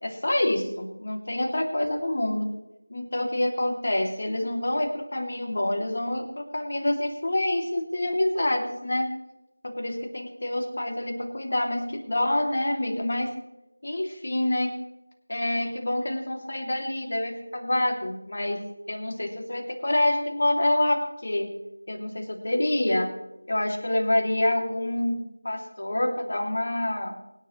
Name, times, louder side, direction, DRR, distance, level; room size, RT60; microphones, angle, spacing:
voice 1, 0.0-2.5 2.9-9.1 9.6-13.3 13.8-14.7 15.3-18.6 18.9-21.5 21.9-23.1 23.5-27.1, left 1 dB, 50° left, 1 dB, 2.7 m, -27 dB
23.5 x 10.0 x 3.2 m, 0.93 s
figure-of-eight pair, 170°, 0 cm